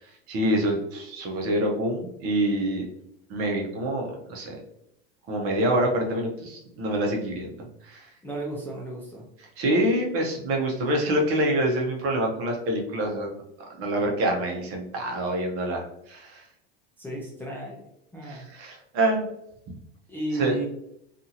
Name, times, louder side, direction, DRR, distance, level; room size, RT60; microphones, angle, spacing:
voice 1, 0.3-2.9 3.3-4.6 5.3-8.1 9.6-13.4 13.7-16.4 18.2-19.3 20.4-20.5, right 1 dB, 45° right, 1 dB, 0.8 m, -26 dB
voice 2, 8.2-9.3 17.0-17.9 18.1-18.5 20.1-20.7, right 2 dB, 5° left, -5 dB, 0.5 m, -33 dB
2.7 x 2.5 x 2.7 m, 0.78 s
supercardioid pair, 120°, 32 cm